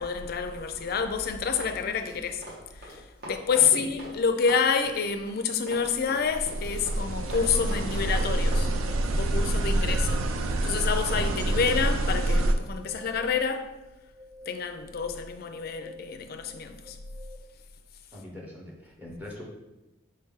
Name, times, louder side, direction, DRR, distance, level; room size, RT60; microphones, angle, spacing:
voice 1, 0.0-2.4 3.3-8.7 9.1-10.2 10.6-13.7 14.5-17.0, left 6 dB, 50° left, 0.4 m, -28 dB
Run, 0.8-4.2 4.4-8.7, right 1 dB, 50° right, 1.3 m, -43 dB
voice 2, 3.5-3.9 9.6-10.0 18.1-19.5, left 1 dB, 10° right, 0.7 m, -42 dB
sound 1, 6.1-12.5, right 1 dB, 85° right, 0.4 m, -27 dB
sound 2, 7.2-17.4, left 1 dB, 70° right, 1.0 m, -50 dB
4.6 x 3.2 x 3.6 m
head